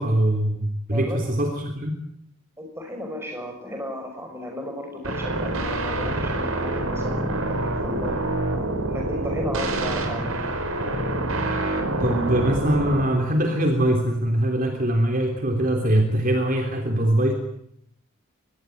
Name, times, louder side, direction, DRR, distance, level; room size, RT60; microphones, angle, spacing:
voice 1, 0.0-1.9 12.0-17.3, right 1 dB, 40° right, 4 dB, 3.3 m, -22 dB
voice 2, 2.6-8.2 8.9-10.4, left 1 dB, 10° right, 4 dB, 6.3 m, -34 dB
sound 1, 5.0-13.0, right 2 dB, 80° right, 5.3 m, -26 dB
24.5 x 20.0 x 9.3 m, 0.72 s
head